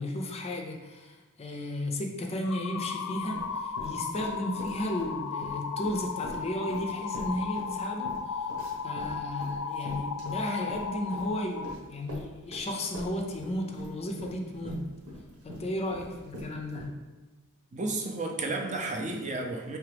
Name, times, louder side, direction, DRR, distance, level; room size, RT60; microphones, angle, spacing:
voice 1, 0.0-8.5 8.8-14.9 15.4-17.0, left 1 dB, 30° left, 2 dB, 0.5 m, -34 dB
sound 1, 2.4-11.8, left 5 dB, 90° left, 0.3 m, -35 dB
sound 2, 3.2-5.1 5.4-12.7 12.9-16.9, equal, 85° right, 1.2 m, -43 dB
voice 2, 17.7-19.8, right 2 dB, 35° right, 1 dB, 0.5 m, -32 dB
4.9 x 3.3 x 3.3 m, 1.2 s
head